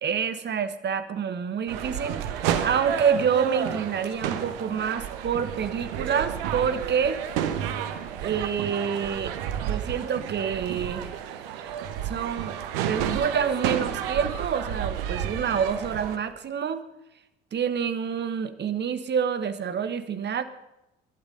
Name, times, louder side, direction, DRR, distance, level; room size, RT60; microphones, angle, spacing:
voice 1, 0.0-7.2 8.2-9.3 9.7-11.2 11.5-12.6 12.9-16.8 17.5-20.4, right 7 dB, 35° right, 12 dB, 1.3 m, -27 dB
sound 1, 1.7-16.2, right 9 dB, 70° right, 1.3 m, -31 dB
20.5 x 11.5 x 5.3 m, 0.92 s
figure-of-eight pair, 55°, 30 cm